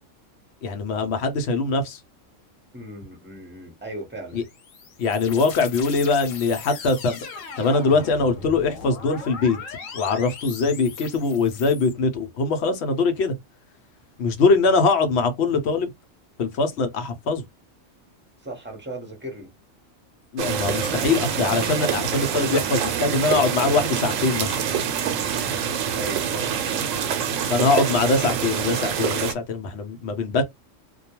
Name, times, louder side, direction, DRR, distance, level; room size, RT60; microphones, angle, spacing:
voice 1, 0.6-2.0 4.3-4.4 5.0-7.3 7.6-9.6 9.9-13.3 14.2-15.9 16.4-17.4 20.3-24.5 27.5-30.4, left 4 dB, 65° left, 0.8 m, -22 dB
voice 2, 2.7-4.4 18.4-19.5 25.9-26.9, right 1 dB, 10° right, 0.7 m, -37 dB
sound 1, 4.3-11.9, left 5 dB, 85° left, 1.0 m, -38 dB
sound 2, 20.4-29.3, right 8 dB, 80° right, 0.9 m, -26 dB
2.2 x 2.2 x 2.9 m
omnidirectional pair, 1.3 m